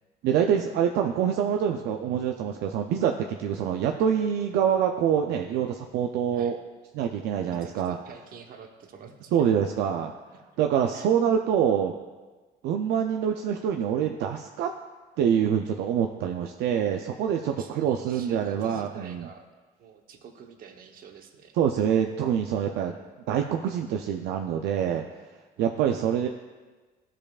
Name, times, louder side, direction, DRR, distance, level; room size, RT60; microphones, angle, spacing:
voice 1, 0.2-6.6 7.0-8.0 9.3-10.1 10.6-11.9 12.6-14.7 15.2-19.3 21.6-23.0 23.3-25.0 25.6-26.3, right 8 dB, 80° right, 4 dB, 0.4 m, -25 dB
voice 2, 7.3-9.5 10.9-11.1 17.5-19.5 19.8-21.6 22.7-23.1, right 6 dB, 60° right, 5 dB, 1.0 m, -47 dB
14.0 x 4.9 x 2.4 m, 1.3 s
cardioid pair, 110°, 17 cm